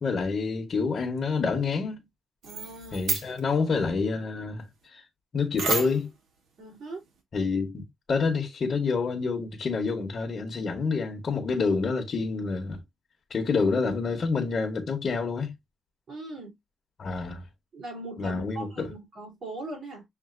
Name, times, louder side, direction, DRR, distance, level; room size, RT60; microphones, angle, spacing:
voice 1, 0.0-2.0 2.9-4.6 4.9-5.0 5.3-6.1 7.3-7.8 8.1-12.8 13.3-15.5 17.0-17.4 18.2-18.9, left 4 dB, 45° left, 1.1 m, -28 dB
voice 2, 2.4-3.1 6.6-7.0 16.1-16.5 17.7-20.0, right 2 dB, 60° right, 2.9 m, -40 dB
sound 1, 2.4-3.4 5.6-6.2, right 3 dB, 90° right, 1.2 m, -30 dB
6.6 x 2.7 x 2.4 m
wide cardioid pair, 145°, 0 cm